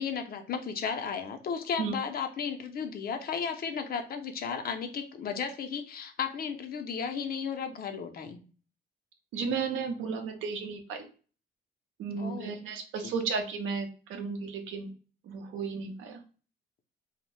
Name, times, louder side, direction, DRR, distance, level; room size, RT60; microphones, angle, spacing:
voice 1, 0.0-8.4 12.2-12.5 13.0-13.1, left 6 dB, 50° left, 6 dB, 0.5 m, -34 dB
voice 2, 9.3-11.1 12.0-14.9 15.2-16.2, right 5 dB, 85° right, 4 dB, 0.6 m, -34 dB
2.6 x 2.0 x 3.0 m, 0.38 s
cardioid pair, 90°, 20 cm